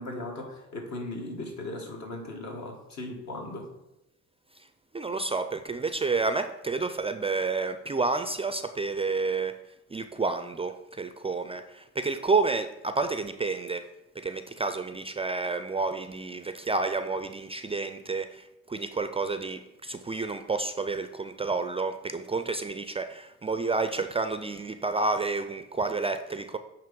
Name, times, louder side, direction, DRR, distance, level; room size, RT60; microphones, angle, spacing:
voice 1, 0.0-3.7, left 2 dB, 65° left, 1 dB, 1.7 m, -37 dB
voice 2, 4.9-9.6 9.9-13.9 14.2-26.6, right 3 dB, 20° right, 9 dB, 0.3 m, -30 dB
8.9 x 3.0 x 5.2 m, 0.92 s
cardioid pair, 90°, 30 cm